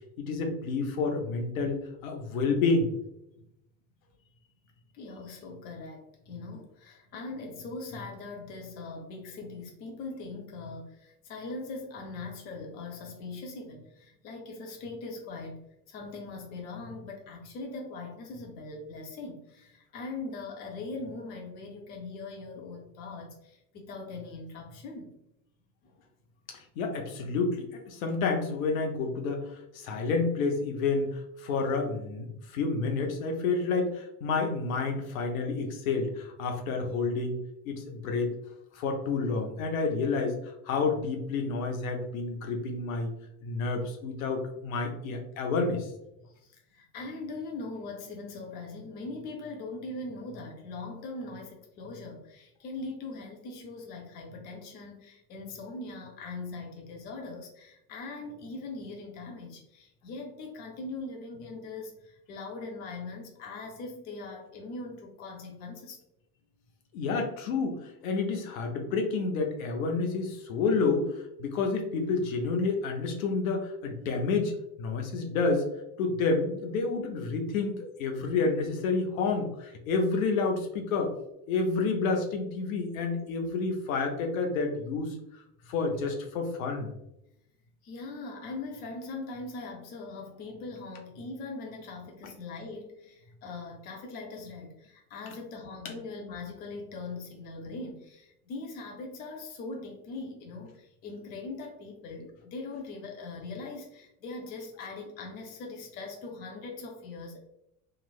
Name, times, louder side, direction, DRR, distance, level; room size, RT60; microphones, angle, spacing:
voice 1, 0.2-1.8 2.0-2.9 26.5-37.4 37.7-38.3 38.7-43.1 43.4-45.9 66.9-74.5 74.8-75.6 76.0-81.1 81.5-85.4 85.7-86.9 95.8-95.9, left 4 dB, 60° left, 3 dB, 0.7 m, -29 dB
voice 2, 4.9-15.6 15.9-25.2 25.8-26.0 46.2-66.0 87.8-107.4, left 3 dB, 25° left, 2 dB, 0.4 m, -41 dB
2.9 x 2.4 x 2.4 m, 0.83 s
figure-of-eight pair, 65°, 47 cm